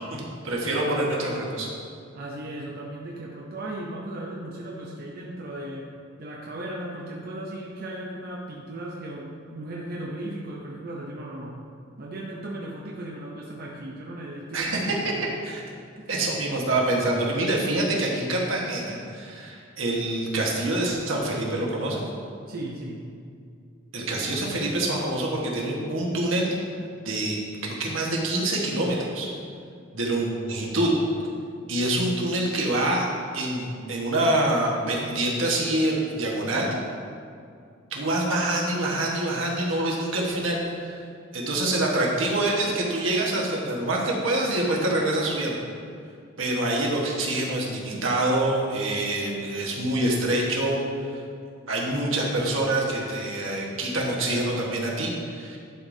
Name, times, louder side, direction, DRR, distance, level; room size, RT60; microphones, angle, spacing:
voice 1, 0.1-1.7 14.5-14.9 15.4-15.6 16.1-22.0 23.9-26.5 27.0-29.3 29.9-30.9 31.7-33.1 33.3-36.7 37.9-41.0 41.3-45.6 46.4-50.8 51.1-51.2 51.7-55.6, right 1 dB, 75° right, -2 dB, 1.3 m, -26 dB
voice 2, 0.6-1.4 2.1-5.9 6.2-11.6 12.0-15.3 16.0-16.1 22.5-23.0 30.3-30.5, right 1 dB, 50° right, -3 dB, 0.6 m, -36 dB
10.5 x 5.0 x 2.7 m, 2.3 s
head